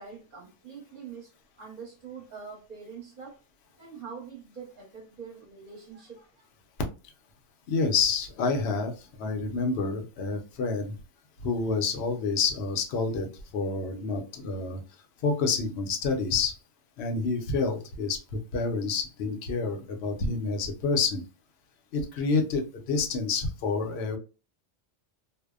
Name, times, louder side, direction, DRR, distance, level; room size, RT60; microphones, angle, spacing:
voice 1, 0.0-1.3 1.6-3.4 3.8-6.5, right 6 dB, 45° right, 1.0 m, -44 dB
voice 2, 7.7-11.0 11.4-14.8 15.2-16.5 17.0-18.2 18.5-21.2 21.9-24.2, left 4 dB, 70° left, 0.8 m, -28 dB
2.6 x 2.0 x 2.3 m
omnidirectional pair, 1.2 m